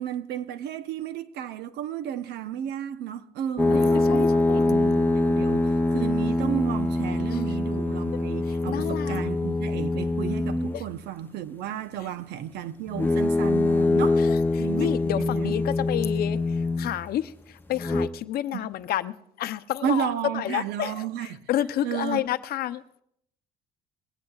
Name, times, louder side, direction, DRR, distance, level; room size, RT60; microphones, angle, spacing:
voice 1, 0.0-14.2 14.6-15.6 18.5-18.7 19.8-21.4 21.8-22.2, right 10 dB, 80° right, 0.8 m, -33 dB
sound 1, 3.6-10.9 12.9-17.1 17.7-18.1, left 2 dB, 10° left, 0.6 m, -24 dB
voice 2, 3.7-4.6 8.7-9.2 14.2-14.3 14.8-16.4 16.8-17.3 17.7-19.1 19.4-20.1 20.3-21.0 21.5-23.0, left 12 dB, 65° left, 0.6 m, -29 dB
21.0 x 16.0 x 2.4 m
cardioid pair, 110°, 17 cm